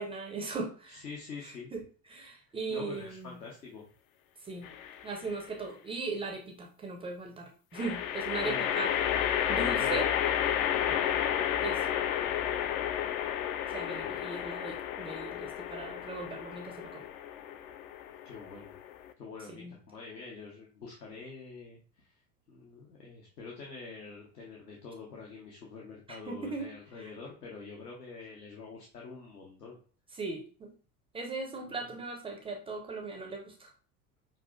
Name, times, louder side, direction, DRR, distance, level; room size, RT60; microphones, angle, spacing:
voice 1, 0.0-1.0 1.4-1.8 2.1-3.4 4.4-4.7 5.0-8.9 9.5-10.1 11.6-11.8 13.7-17.1 19.5-19.7 26.1-26.7 27.0-27.1 30.1-30.7 31.1-33.7, right 3 dB, 15° right, 2 dB, 0.4 m, -38 dB
voice 2, 0.9-1.7 2.7-3.9 8.4-8.9 9.5-10.0 10.7-11.0 13.9-14.2 18.2-18.8 19.2-22.1 22.5-29.8 31.7-31.8, left 4 dB, 75° left, -2 dB, 0.9 m, -46 dB
sound 1, 4.6-5.2 7.7-19.1, left 10 dB, 60° left, 0.5 m, -32 dB
5.6 x 2.5 x 2.3 m, 0.40 s
figure-of-eight pair, 70°, 49 cm